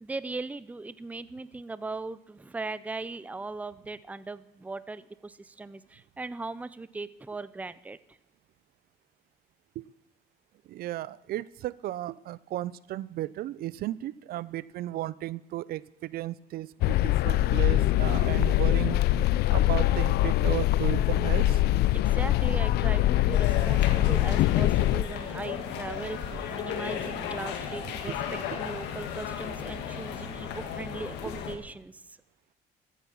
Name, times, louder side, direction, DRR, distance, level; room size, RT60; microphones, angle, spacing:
voice 1, 0.0-8.0 21.9-26.2 26.5-32.0, right 3 dB, 10° right, 17 dB, 0.5 m, -38 dB
voice 2, 10.7-19.0 19.5-21.8 27.9-28.2 28.5-28.6, right 14 dB, 65° right, 20 dB, 0.4 m, -35 dB
sound 1, 16.8-25.0, left 14 dB, 75° left, 0.4 m, -23 dB
sound 2, 23.3-31.6, left 8 dB, 90° left, 1.7 m, -35 dB
14.5 x 8.5 x 7.1 m, 0.84 s
cardioid pair, 110°, 17 cm